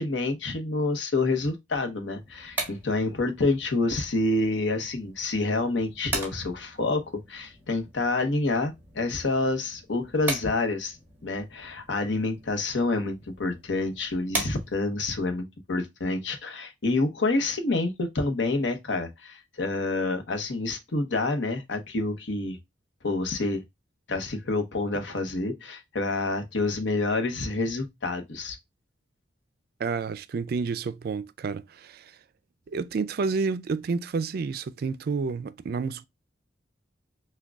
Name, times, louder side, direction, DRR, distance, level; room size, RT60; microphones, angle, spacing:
voice 1, 0.0-7.0 7.3-11.0 11.2-22.6 23.0-23.6 24.1-28.6, left 2 dB, 80° left, 0.9 m, -28 dB
sound 1, 2.2-15.1, right 2 dB, 10° right, 1.4 m, -39 dB
voice 2, 29.8-32.2 32.7-36.1, right 4 dB, 55° right, 0.3 m, -30 dB
6.0 x 2.3 x 2.2 m
head